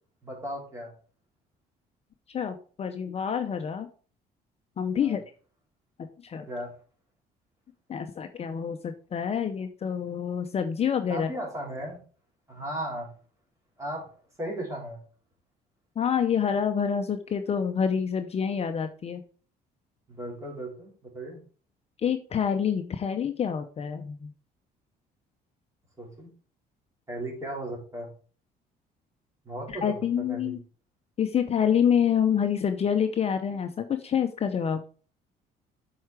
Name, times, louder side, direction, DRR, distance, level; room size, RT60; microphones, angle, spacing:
voice 1, 0.2-0.9 5.0-5.2 6.4-6.7 11.1-12.0 12.5-13.1 13.8-14.0 14.4-15.0 20.1-21.4 26.0-26.3 27.1-28.1 29.4-29.9 30.3-30.5, right 1 dB, 20° right, -1 dB, 4.0 m, -36 dB
voice 2, 2.3-3.9 4.8-5.2 6.2-6.5 7.9-11.3 16.0-19.2 22.0-24.3 29.7-30.6 31.2-34.8, left 7 dB, 40° left, 7 dB, 0.7 m, -27 dB
7.8 x 4.8 x 4.8 m, 0.41 s
cardioid pair, 110°, 17 cm